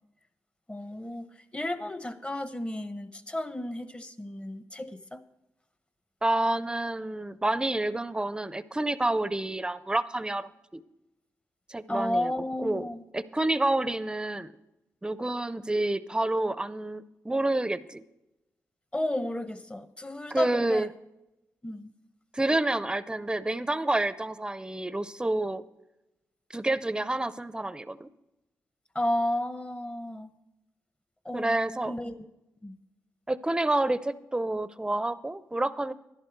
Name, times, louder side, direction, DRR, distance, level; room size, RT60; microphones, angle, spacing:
voice 1, 0.7-1.3 1.5-5.2 11.9-13.0 18.9-20.9 21.6-21.9 28.9-30.3 31.2-31.5 31.8-32.2 32.6-32.8, left 1 dB, 20° left, 12 dB, 0.8 m, -32 dB
voice 2, 6.2-10.8 11.7-12.3 12.6-12.8 13.1-14.5 15.0-18.0 20.3-20.9 22.3-25.6 26.5-28.1 31.3-31.9 33.3-35.9, right 2 dB, 15° right, 16 dB, 0.5 m, -28 dB
11.0 x 11.0 x 4.5 m, 0.96 s
cardioid pair, 65°, 6 cm